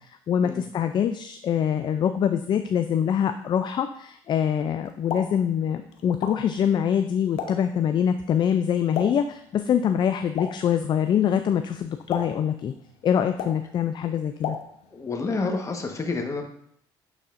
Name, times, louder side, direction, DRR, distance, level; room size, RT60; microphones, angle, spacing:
voice 1, 0.0-12.7 13.0-14.6, left 8 dB, 45° left, 8 dB, 0.4 m, -24 dB
Explosion, 4.8-15.1, left 7 dB, 75° left, 0.8 m, -38 dB
voice 2, 14.9-16.4, left 3 dB, 30° left, 3 dB, 1.3 m, -29 dB
9.0 x 4.1 x 2.6 m, 0.65 s
supercardioid pair, 75°, 11 cm